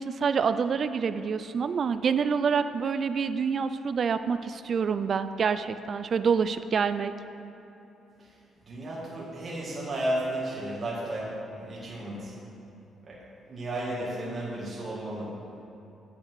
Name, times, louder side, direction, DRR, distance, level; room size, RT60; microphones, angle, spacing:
voice 1, 0.0-7.1, right 6 dB, 50° right, 12 dB, 0.4 m, -27 dB
voice 2, 8.7-11.3 11.6-12.3 13.0-13.2 13.5-15.3, right 1 dB, 35° right, -7 dB, 2.1 m, -33 dB
8.3 x 8.0 x 4.8 m, 2.9 s
cardioid pair, 90°, 0 cm